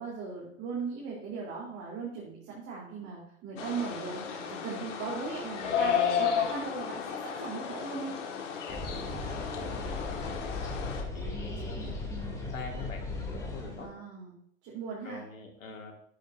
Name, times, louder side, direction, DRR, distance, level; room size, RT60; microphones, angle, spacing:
voice 1, 0.0-8.2 13.8-14.3 14.6-15.2, right 5 dB, 35° right, -6 dB, 3.7 m, -38 dB
ireland amb, 3.6-11.0, left 7 dB, 65° left, 2.0 m, -33 dB
voice 2, 8.7-10.5 11.1-13.9 15.0-15.9, left 4 dB, 90° left, 2 dB, 2.2 m, -45 dB
sound 1, 8.7-13.8, left 2 dB, 10° left, 3.0 m, -37 dB
12.5 x 8.6 x 2.7 m, 0.69 s
hypercardioid pair, 120°, 39 cm